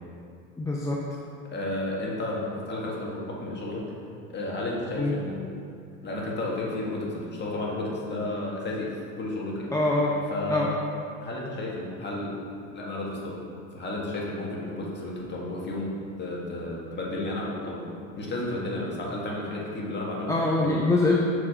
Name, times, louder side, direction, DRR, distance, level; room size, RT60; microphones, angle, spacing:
voice 1, 0.6-1.0 5.0-5.1 9.7-10.2 10.5-10.7 20.3-21.2, left 2 dB, 10° left, -3 dB, 0.6 m, -24 dB
voice 2, 1.5-3.8 4.3-5.5 6.0-9.7 10.3-10.7 11.2-12.4 12.7-13.4 13.7-20.8, left 2 dB, 25° left, -4 dB, 1.8 m, -32 dB
6.6 x 4.9 x 5.0 m, 2.4 s
supercardioid pair, 100°, 39 cm